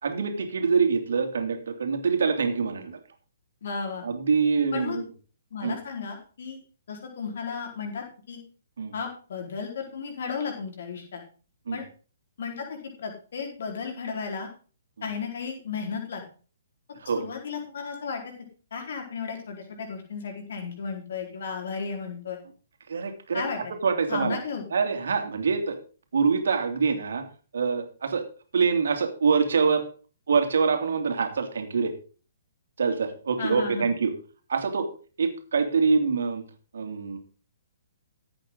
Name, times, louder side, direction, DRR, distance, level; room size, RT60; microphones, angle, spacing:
voice 1, 0.0-3.0 4.0-5.0 5.6-5.8 8.8-8.9 11.7-11.8 17.0-17.3 22.9-24.4 24.7-25.8 26.1-27.2 27.5-28.2 28.5-29.9 30.3-31.9 32.8-34.1 34.5-34.9 35.2-36.4 36.7-37.2, right 5 dB, 60° right, 5 dB, 2.7 m, -25 dB
voice 2, 3.6-4.0 4.7-5.0 5.5-6.6 6.9-8.4 8.9-11.2 11.7-11.8 12.4-14.5 15.0-16.2 16.9-18.3 18.7-22.4 23.3-23.6 24.1-24.6 33.4-33.9, left 5 dB, 55° left, 2 dB, 4.5 m, -34 dB
15.0 x 8.7 x 3.9 m, 0.38 s
figure-of-eight pair, 125°, 0 cm